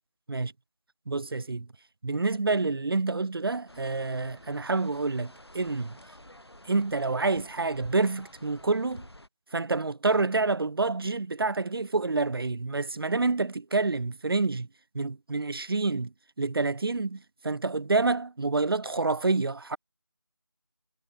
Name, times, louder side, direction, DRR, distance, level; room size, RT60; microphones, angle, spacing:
voice 1, 1.1-1.7 2.0-6.0 6.6-9.1 9.5-14.7 14.9-19.8, right 3 dB, 65° right, 0.4 m, -28 dB
sound 1, 3.7-9.3, left 1 dB, 80° left, 6.3 m, -50 dB
figure-of-eight pair, 170°, 13 cm